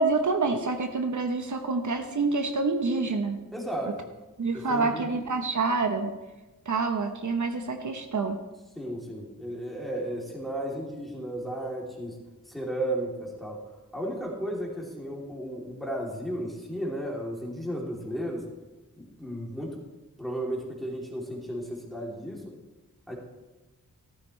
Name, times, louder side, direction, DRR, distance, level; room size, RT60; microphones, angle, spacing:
voice 1, 0.0-3.4 4.4-6.1 6.7-8.4, right 3 dB, 65° right, 5 dB, 0.9 m, -27 dB
voice 2, 3.5-4.0 4.5-5.1 8.8-12.2 12.5-13.6 13.9-18.4 19.0-19.8 20.2-22.5 23.1-23.2, right 1 dB, ahead, -3 dB, 2.8 m, -34 dB
13.5 x 13.0 x 3.2 m, 1.1 s
wide cardioid pair, 95°, 33 cm